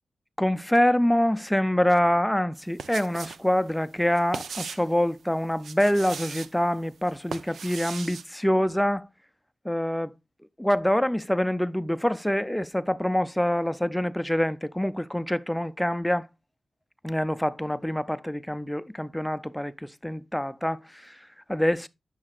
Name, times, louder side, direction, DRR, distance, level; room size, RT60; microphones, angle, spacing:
voice 1, 0.4-9.1 9.6-10.1 10.6-16.3 17.0-21.9, equal, 5° left, 0.4 m, -25 dB
sound 1, 2.6-3.4 3.7-4.9 5.5-6.5 7.1-8.2, right 6 dB, 85° right, 0.5 m, -38 dB
10.5 x 6.3 x 2.4 m
cardioid pair, 65°, 0 cm